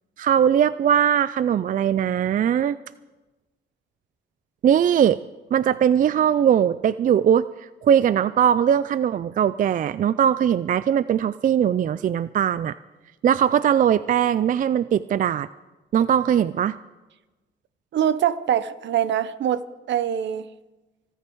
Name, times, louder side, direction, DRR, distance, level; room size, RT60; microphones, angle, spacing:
voice 1, 0.2-2.8 4.6-5.2 5.5-7.5 7.8-12.8 13.2-15.5 15.9-16.8, right 9 dB, 45° right, 16 dB, 0.4 m, -20 dB
voice 2, 17.9-19.6 19.9-20.5, right 10 dB, 65° right, 16 dB, 0.8 m, -23 dB
24.5 x 9.9 x 4.6 m, 1.1 s
cardioid pair, 90°, 20 cm